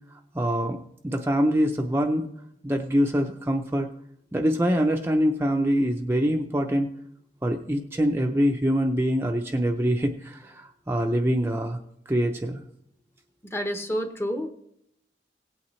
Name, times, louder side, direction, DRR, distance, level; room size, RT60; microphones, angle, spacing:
voice 1, 0.3-0.8 1.0-2.3 2.6-3.9 4.3-6.9 7.4-11.8 12.1-12.6, equal, 15° right, 2 dB, 0.6 m, -24 dB
voice 2, 13.5-14.5, equal, 15° left, 6 dB, 0.8 m, -29 dB
17.5 x 8.6 x 3.2 m, 0.76 s
head